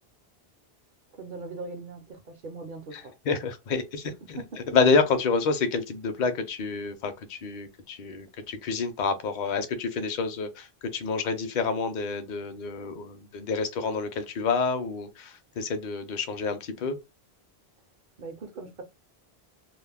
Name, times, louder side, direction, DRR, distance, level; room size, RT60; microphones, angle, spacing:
voice 1, 1.1-3.1 4.0-4.8 18.2-18.8, right 3 dB, 60° right, 0.6 m, -40 dB
voice 2, 3.3-4.4 4.7-17.0, left 4 dB, 55° left, 0.6 m, -28 dB
2.4 x 2.0 x 3.3 m
omnidirectional pair, 1.1 m